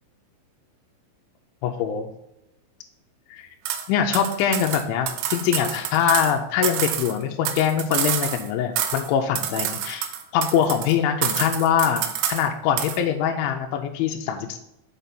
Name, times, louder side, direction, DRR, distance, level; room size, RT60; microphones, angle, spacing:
voice 1, 1.6-2.1 3.3-3.5 3.9-12.0 12.3-14.6, left 8 dB, 85° left, 3 dB, 3.0 m, -23 dB
sound 1, 3.7-3.9 4.1-6.3 6.6-8.5 8.8-9.1 9.4-10.9 11.2-12.5 12.8-13.0, right 10 dB, 80° right, 3.0 m, -27 dB
6.8 x 5.1 x 5.8 m, 0.85 s
omnidirectional pair, 5.5 m